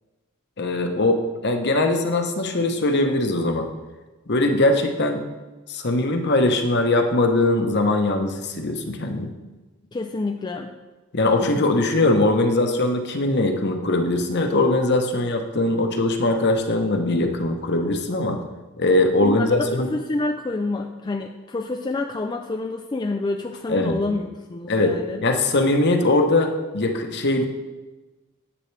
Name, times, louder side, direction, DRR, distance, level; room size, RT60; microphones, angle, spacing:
voice 1, 0.6-3.7 4.3-5.3 5.7-9.3 11.1-18.4 18.8-19.9 23.7-24.0 24.7-27.5, left 2 dB, 50° left, 5 dB, 0.9 m, -21 dB
voice 2, 9.9-10.7 11.6-11.7 19.2-25.2, left 2 dB, 20° left, 4 dB, 0.3 m, -28 dB
9.9 x 8.4 x 3.3 m, 1.2 s
head